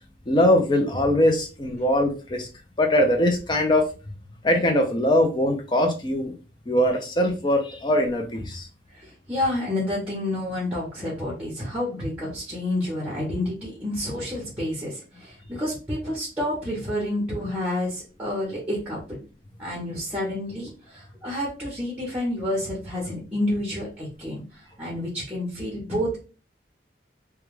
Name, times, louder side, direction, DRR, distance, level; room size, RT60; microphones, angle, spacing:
voice 1, 0.3-2.5 2.8-3.9 4.4-6.3 6.7-8.7, left 1 dB, 25° left, 5 dB, 0.4 m, -21 dB
voice 2, 8.9-19.2 19.6-26.2, left 1 dB, 10° right, -4 dB, 0.8 m, -29 dB
2.2 x 2.2 x 3.1 m, 0.35 s
head